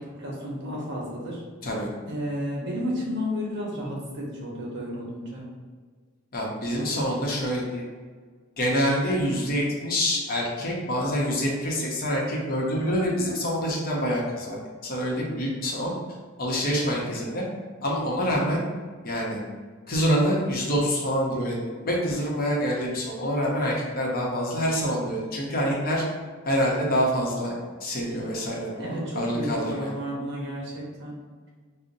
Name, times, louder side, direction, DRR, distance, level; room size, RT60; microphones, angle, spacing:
voice 1, 0.0-1.4 2.1-5.5 16.9-17.2 28.8-31.1, equal, 55° right, -3 dB, 1.0 m, -32 dB
voice 2, 6.3-7.8 8.6-14.6 14.8-15.9 16.4-17.4 17.8-18.6 19.0-19.4 19.9-21.6 21.8-26.0 26.5-27.5 27.8-29.9, equal, 40° left, -3 dB, 0.8 m, -26 dB
5.1 x 2.1 x 2.6 m, 1.5 s
head